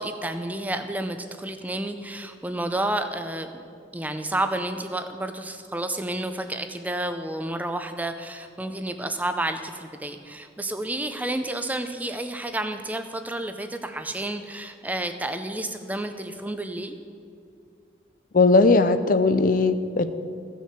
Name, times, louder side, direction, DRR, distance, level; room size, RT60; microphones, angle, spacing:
voice 1, 0.0-3.6 3.9-17.0, right 1 dB, 10° right, 7 dB, 0.5 m, -30 dB
voice 2, 18.3-20.1, left 3 dB, 45° left, 11 dB, 0.5 m, -18 dB
15.5 x 6.4 x 6.7 m, 2.5 s
head